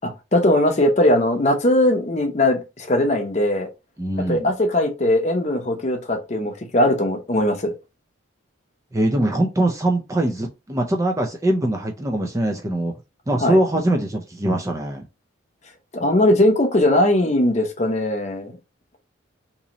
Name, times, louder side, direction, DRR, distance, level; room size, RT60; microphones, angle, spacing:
voice 1, 0.0-3.7 4.3-7.7 13.4-13.6 15.9-18.6, left 1 dB, 35° left, 0.6 m, -19 dB
voice 2, 4.0-4.5 8.9-12.9 13.3-15.0, right 1 dB, 15° right, 0.4 m, -22 dB
3.0 x 2.7 x 3.8 m
head